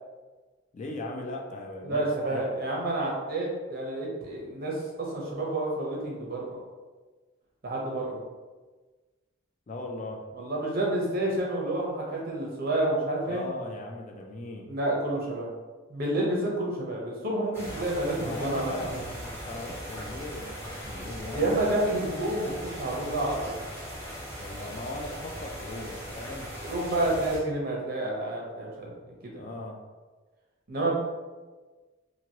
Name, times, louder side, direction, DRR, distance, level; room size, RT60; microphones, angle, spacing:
voice 1, 0.7-2.4 9.7-10.3 13.3-14.7 17.7-19.0 19.3-21.7 24.4-26.5 29.3-29.8, left 2 dB, 40° left, 1 dB, 0.3 m, -38 dB
voice 2, 1.8-6.6 7.6-8.2 10.4-13.4 14.7-15.5 15.9-19.0 21.3-23.6 26.6-28.9 29.2-29.4 30.7-30.9, right 1 dB, 50° right, -3 dB, 0.8 m, -29 dB
sound 1, 17.5-27.4, equal, 10° left, 0.7 m, -39 dB
2.9 x 2.6 x 2.8 m, 1.3 s
head